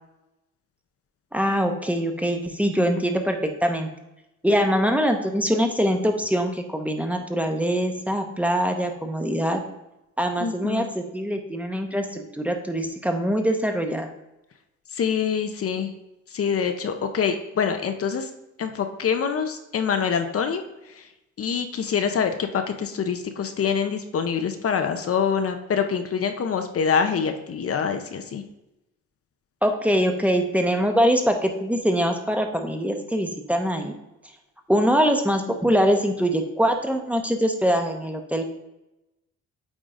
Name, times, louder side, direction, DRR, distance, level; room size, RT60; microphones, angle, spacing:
voice 1, 1.3-3.9 4.4-9.6 10.2-14.1 29.6-33.9 34.7-38.5, equal, 5° right, 4 dB, 0.9 m, -23 dB
voice 2, 10.4-10.9 14.9-15.9 16.3-18.3 18.6-21.1 21.4-28.4, left 6 dB, 50° left, 7 dB, 0.8 m, -25 dB
8.8 x 3.8 x 3.8 m, 0.94 s
cardioid pair, 90°, 30 cm